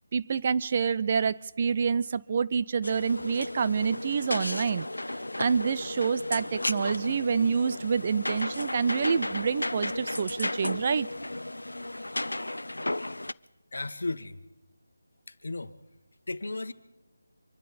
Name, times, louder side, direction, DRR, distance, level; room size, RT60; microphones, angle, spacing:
voice 1, 0.1-4.9 5.4-11.1, right 6 dB, 35° right, 15 dB, 0.5 m, -27 dB
sound 1, 2.8-13.3, left 1 dB, 90° left, 0.5 m, -34 dB
voice 2, 13.7-14.4 15.3-15.8 16.3-16.7, left 2 dB, 70° left, 11 dB, 1.2 m, -34 dB
25.0 x 12.0 x 4.2 m, 1.0 s
figure-of-eight pair, 165°, 0 cm